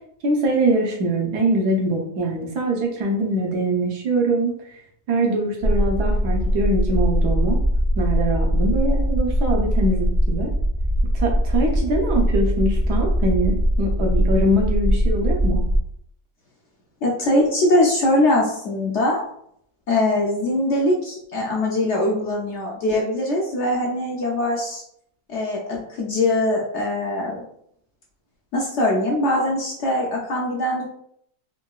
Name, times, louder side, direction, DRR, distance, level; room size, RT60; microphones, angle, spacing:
voice 1, 0.2-4.5 5.1-7.6 8.0-10.5 11.1-15.6, right 1 dB, 85° right, 1 dB, 1.3 m, -23 dB
sound 1, 5.6-15.8, equal, 55° right, 0.5 m, -21 dB
voice 2, 17.0-19.2 19.9-24.8 25.3-27.4 28.5-30.9, left 1 dB, 65° left, -2 dB, 0.7 m, -22 dB
3.8 x 2.2 x 2.3 m, 0.70 s
omnidirectional pair, 1.6 m